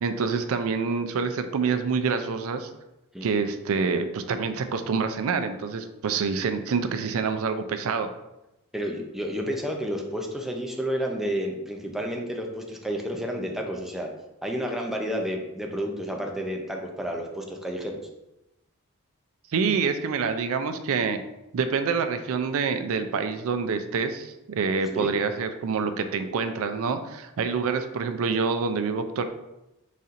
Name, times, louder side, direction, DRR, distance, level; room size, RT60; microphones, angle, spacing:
voice 1, 0.0-2.7 3.2-8.1 19.5-21.2 21.5-29.2, right 5 dB, 65° right, 8 dB, 0.4 m, -27 dB
voice 2, 8.7-14.1 14.4-18.0 24.9-25.1, equal, ahead, 1 dB, 0.5 m, -30 dB
4.1 x 4.0 x 2.5 m, 0.93 s
head